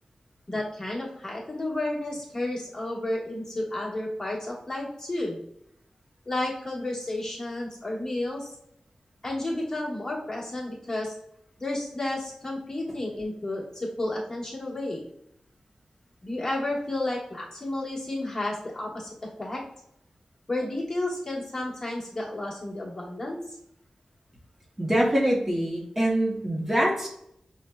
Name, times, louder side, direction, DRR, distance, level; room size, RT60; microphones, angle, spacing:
voice 1, 0.5-5.4 6.3-8.5 9.2-11.1 11.6-15.0 16.2-19.6 20.5-23.6, left 1 dB, 30° left, -5 dB, 1.2 m, -32 dB
voice 2, 24.8-27.1, right 1 dB, 20° right, -3 dB, 0.8 m, -24 dB
5.7 x 2.1 x 2.2 m, 0.74 s
wide cardioid pair, 115°, 2 cm